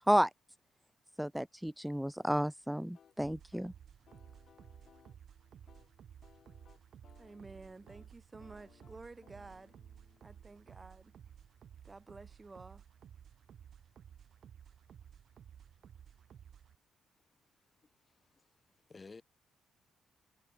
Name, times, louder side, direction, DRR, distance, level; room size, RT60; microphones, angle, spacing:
voice 1, 1.2-3.7, equal, 5° right, 0.4 m, -31 dB
sound 1, 2.9-11.5, left 8 dB, 55° left, 5.4 m, -66 dB
sound 2, 3.2-16.8, right 9 dB, 60° right, 7.1 m, -56 dB
voice 2, 7.2-9.8 10.2-11.1 11.8-12.8, right 3 dB, 25° right, 1.8 m, -52 dB
voice 3, 17.8-18.5 18.9-19.2, left 4 dB, 30° left, 7.7 m, -54 dB
cardioid pair, 90°, 0 cm